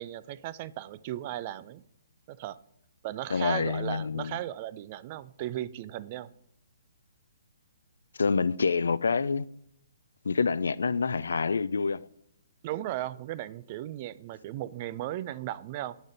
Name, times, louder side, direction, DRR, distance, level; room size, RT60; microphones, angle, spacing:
voice 1, 0.0-1.8 2.3-2.6 3.0-6.3 12.6-16.0, right 14 dB, 35° right, 0.3 m, -36 dB
voice 2, 3.3-4.4 8.2-9.5 10.2-12.1, left 5 dB, 85° left, 0.3 m, -27 dB
9.2 x 4.0 x 5.1 m
hypercardioid pair, 155°, 0 cm